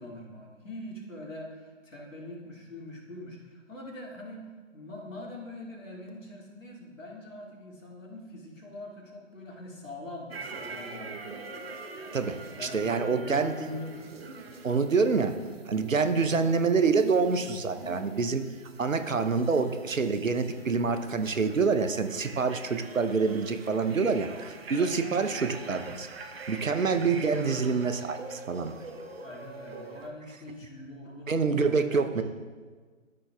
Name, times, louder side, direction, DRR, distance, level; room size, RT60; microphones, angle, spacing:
voice 1, 0.0-11.6 12.6-14.1 16.0-16.3 18.9-19.1 24.8-24.9 26.8-27.1 29.2-32.2, left 1 dB, 80° left, -2 dB, 2.2 m, -43 dB
sound 1, 10.3-30.1, right 4 dB, 50° right, 0.8 m, -44 dB
voice 2, 12.1-13.5 14.6-15.3 15.7-18.5 18.8-26.1 26.5-28.7 31.3-32.2, right 4 dB, 85° right, 9 dB, 0.8 m, -26 dB
13.5 x 6.2 x 2.3 m, 1.5 s
figure-of-eight pair, 140°, 39 cm